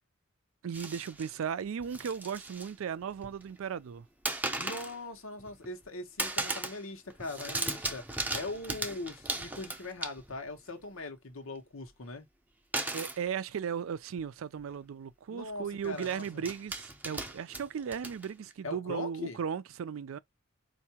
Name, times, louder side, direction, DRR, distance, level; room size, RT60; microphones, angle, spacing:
voice 1, 0.6-4.1 12.9-20.2, right 7 dB, 85° right, 0.4 m, -36 dB
sound 1, 0.7-1.3 1.8-2.7 3.0-3.6 4.2-5.0 5.4-5.9 6.2-6.8 7.1-10.5 12.7-13.2 14.2-14.3 14.6-14.8 15.8-18.5, right 2 dB, 10° right, 0.5 m, -37 dB
voice 2, 4.4-12.3 15.3-16.4 18.6-19.4, left 2 dB, 85° left, 1.1 m, -41 dB
4.6 x 2.6 x 2.8 m
head